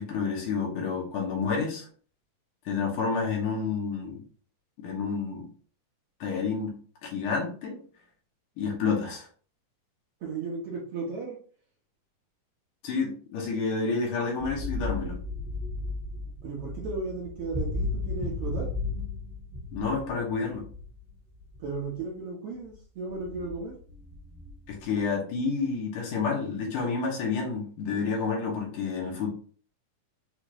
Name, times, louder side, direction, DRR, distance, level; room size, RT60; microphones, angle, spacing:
voice 1, 0.0-1.9 2.7-4.2 4.8-5.5 6.2-6.7 7.0-7.8 8.6-9.3 12.8-15.2 19.7-20.6 24.7-29.3, left 5 dB, 80° left, -2 dB, 2.7 m, -29 dB
voice 2, 10.2-11.4 16.4-18.7 21.6-23.7, right 4 dB, 65° right, -3 dB, 1.5 m, -35 dB
sound 1, 14.4-22.0 22.7-22.8 23.1-24.8, left 3 dB, 45° right, 1.2 m, -34 dB
6.4 x 2.5 x 3.0 m, 0.43 s
omnidirectional pair, 3.6 m